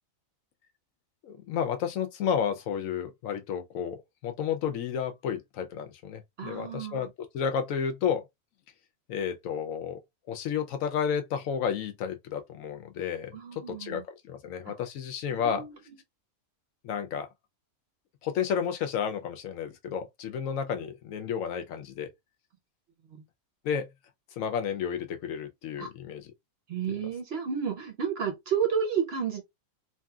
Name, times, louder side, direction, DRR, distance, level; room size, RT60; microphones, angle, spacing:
voice 1, 1.2-7.1 7.3-8.2 9.1-10.0 10.3-15.6 16.8-17.3 18.2-22.1 23.6-23.9 24.4-26.3 26.9-27.0, left 7 dB, 70° left, 0.9 m, -31 dB
voice 2, 6.4-7.1 13.3-14.0 15.3-15.7 25.8-25.9 26.7-29.4, right 7 dB, 55° right, 0.8 m, -31 dB
2.9 x 2.6 x 2.3 m
omnidirectional pair, 1.5 m